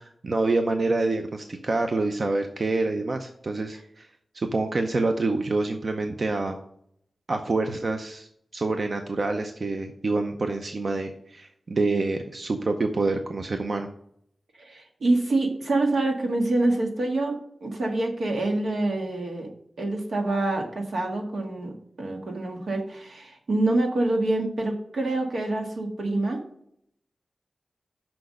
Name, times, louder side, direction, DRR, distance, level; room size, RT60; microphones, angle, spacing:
voice 1, 0.0-4.1 4.3-6.6 7.3-13.9, right 3 dB, 55° right, 5 dB, 0.6 m, -27 dB
voice 2, 14.6-19.5 19.8-26.4, right 2 dB, 90° right, 1 dB, 1.8 m, -26 dB
6.2 x 5.8 x 6.4 m, 0.71 s
wide cardioid pair, 90°, 0 cm